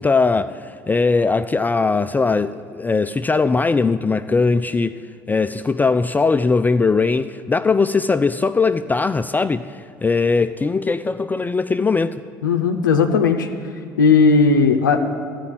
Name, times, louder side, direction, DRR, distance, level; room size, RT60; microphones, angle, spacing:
voice 1, 0.0-4.9 5.3-12.2, left 4 dB, 15° left, 10 dB, 0.3 m, -20 dB
voice 2, 12.4-13.5 14.0-15.1, left 4 dB, 90° left, 4 dB, 0.5 m, -16 dB
13.0 x 5.2 x 8.9 m, 2.4 s
hypercardioid pair, 60°, 10 cm